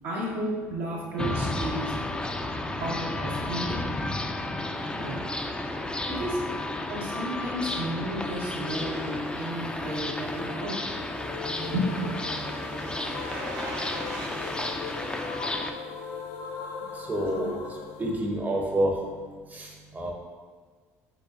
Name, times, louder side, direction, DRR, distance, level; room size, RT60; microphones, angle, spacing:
voice 1, 0.0-1.9 2.8-3.8 5.0-5.2 6.1-6.4 6.9-10.8 11.7-12.1 17.3-17.5, equal, 80° right, -5 dB, 1.3 m, -32 dB
sound 1, 1.2-15.7, left 2 dB, 10° left, 0.4 m, -32 dB
sound 2, 4.7-16.6 17.0-17.1, right 2 dB, 50° right, 1.1 m, -44 dB
sound 3, 8.3-19.2, left 5 dB, 60° left, 0.6 m, -40 dB
voice 2, 17.1-17.5 18.0-18.9 19.5-19.7 19.9-20.1, right 1 dB, 20° right, 0 dB, 0.8 m, -27 dB
5.4 x 4.0 x 2.5 m, 1.5 s
hypercardioid pair, 60°, 8 cm